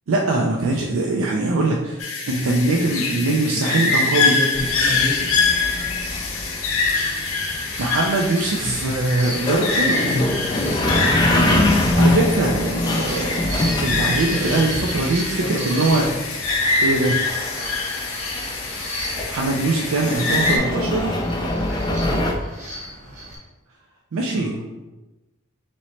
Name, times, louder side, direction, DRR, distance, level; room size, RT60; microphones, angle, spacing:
voice 1, 0.1-2.0 2.3-4.3 7.8-10.2 11.8-13.4 13.8-16.0 16.8-17.2 19.3-21.2 24.1-24.5, right 2 dB, 80° right, -1 dB, 0.4 m, -22 dB
sound 1, 2.0-20.6, left 4 dB, 85° left, 0.6 m, -25 dB
voice 2, 2.7-5.4 8.6-8.9 9.7-11.4 14.3-15.0 15.4-16.2 22.0-22.3 24.3-24.7, left 1 dB, 50° left, -1 dB, 0.8 m, -31 dB
sound 2, 4.5-22.3, left 1 dB, 20° left, 0.3 m, -25 dB
sound 3, 6.1-23.4, right 1 dB, 35° right, 0.9 m, -36 dB
3.0 x 2.9 x 4.2 m, 1.1 s
head